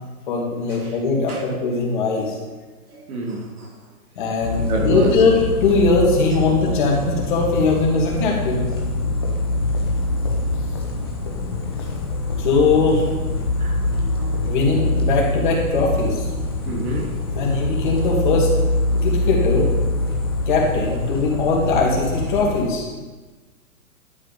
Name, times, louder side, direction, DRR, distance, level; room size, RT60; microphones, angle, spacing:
voice 1, 0.3-2.4 4.2-8.7 12.4-13.0 14.5-16.2 17.4-18.5 19.0-19.7 20.5-22.8, left 3 dB, 30° left, -2 dB, 2.4 m, -20 dB
voice 2, 2.9-3.8 4.4-5.2 12.7-12.8 13.6-14.8 16.6-17.2 17.5-17.9, right 2 dB, 70° right, 0 dB, 3.1 m, -29 dB
sound 1, 4.4-22.6, left 2 dB, 15° left, 0.6 m, -24 dB
11.5 x 8.0 x 5.3 m, 1.3 s
hypercardioid pair, 175°, 45 cm